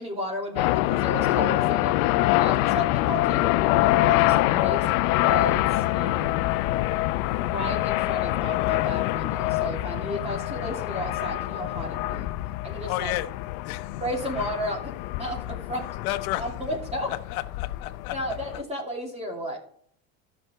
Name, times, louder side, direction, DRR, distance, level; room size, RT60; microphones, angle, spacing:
voice 1, 0.0-2.0 2.4-4.9 5.2-6.4 7.4-12.3 12.6-13.1 14.0-14.9 15.2-15.9 16.4-17.1 18.1-19.6, equal, 15° right, 0 dB, 2.7 m, -33 dB
sound 1, 0.6-18.6, left 17 dB, 70° left, 0.6 m, -25 dB
voice 2, 12.8-13.3 13.6-14.0 16.0-16.5 17.1-18.4, left 16 dB, 85° left, 10 dB, 0.9 m, -32 dB
13.5 x 6.1 x 4.4 m, 0.62 s
supercardioid pair, 145°, 42 cm